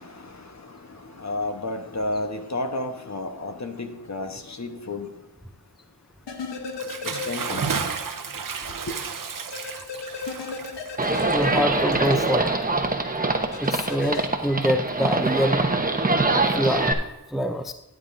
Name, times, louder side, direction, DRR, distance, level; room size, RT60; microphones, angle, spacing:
voice 1, 1.2-5.1 7.3-7.6, left 2 dB, 40° left, 1.1 m, -31 dB
sound 1, 6.3-8.0 8.3-8.4 9.5-12.3 13.5-14.3, left 4 dB, 90° left, 1.1 m, -35 dB
Bathtub (filling or washing) / Splash splatter, 6.7-12.6, right 5 dB, 50° right, 0.8 m, -33 dB
Livestock farm animals working animals, 11.0-16.9, right 2 dB, 20° right, 1.0 m, -24 dB
voice 2, 11.3-12.5 13.6-15.6 16.5-17.0 17.3-17.7, equal, ahead, 0.5 m, -25 dB
12.5 x 9.3 x 2.6 m
wide cardioid pair, 70°, 41 cm